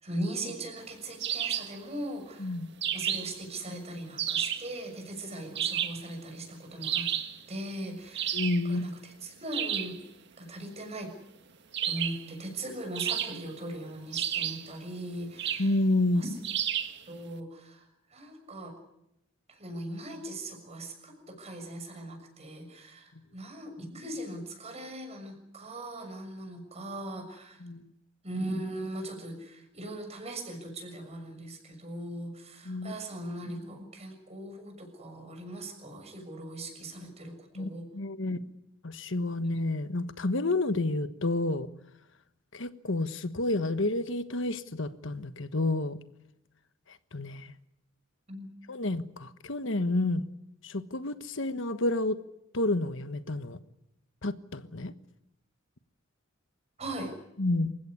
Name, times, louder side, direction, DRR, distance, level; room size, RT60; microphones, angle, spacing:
voice 1, 0.0-2.5 2.9-7.1 7.5-10.0 10.4-11.1 11.8-15.7 16.1-16.4 17.1-18.7 19.5-27.6 28.2-37.9 48.3-48.5 56.8-57.1, right 1 dB, 30° right, 4 dB, 6.7 m, -39 dB
sound 1, 1.2-1.8 2.8-3.4 4.2-4.7 5.5-6.1 6.8-7.4 8.1-8.7 9.5-10.0 11.7-12.3 12.9-13.6 14.1-14.7 15.4-15.7 16.4-17.0, right 10 dB, 60° right, 1.8 m, -31 dB
voice 2, 8.3-8.8 15.6-16.2 27.6-27.8 32.6-32.9 37.5-38.4 38.8-41.7 42.5-46.0 47.1-47.5 48.7-50.2 50.6-52.2 52.5-53.6 54.2-54.9 57.4-57.7, left 2 dB, 70° left, 11 dB, 1.3 m, -29 dB
28.0 x 16.0 x 9.8 m, 0.83 s
head